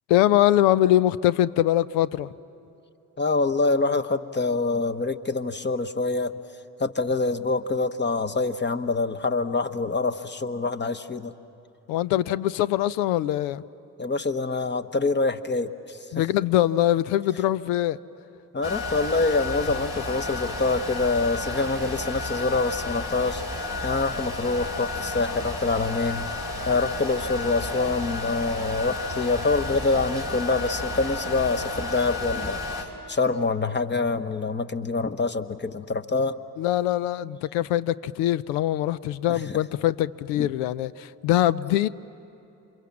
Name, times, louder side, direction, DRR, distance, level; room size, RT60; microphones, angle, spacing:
voice 1, 0.1-2.3 11.9-13.6 16.1-18.0 36.6-41.9, left 13 dB, 70° left, 17 dB, 0.6 m, -23 dB
voice 2, 3.2-6.3 6.8-11.3 14.0-16.0 18.5-23.4 23.8-26.3 26.6-32.6 33.1-36.4 40.3-40.5, left 3 dB, 25° left, 9 dB, 1.1 m, -25 dB
sound 1, 18.6-32.8, left 2 dB, 50° left, 4.0 m, -32 dB
28.5 x 25.5 x 7.4 m, 2.9 s
figure-of-eight pair, 40°, 46 cm